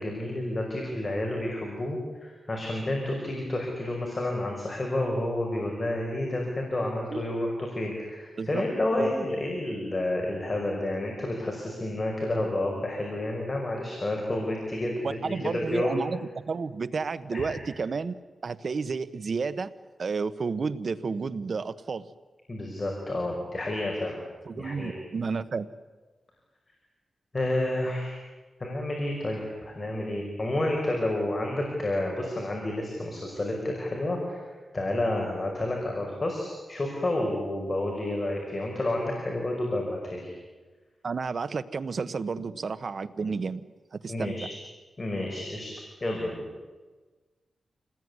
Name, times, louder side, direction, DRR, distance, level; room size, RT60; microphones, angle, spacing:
voice 1, 0.0-16.0 17.3-17.6 22.5-24.2 24.5-24.9 27.3-28.2 28.6-34.4 34.7-40.3 44.1-44.6 45.0-45.7 46.0-46.4, left 1 dB, 30° left, 0 dB, 5.4 m, -30 dB
voice 2, 15.0-18.2 18.4-19.7 20.0-22.1 24.4-25.7 41.0-43.6 43.9-44.3, right 5 dB, 55° right, 12 dB, 1.1 m, -31 dB
27.5 x 19.5 x 9.8 m, 1.3 s
wide cardioid pair, 100°, 0 cm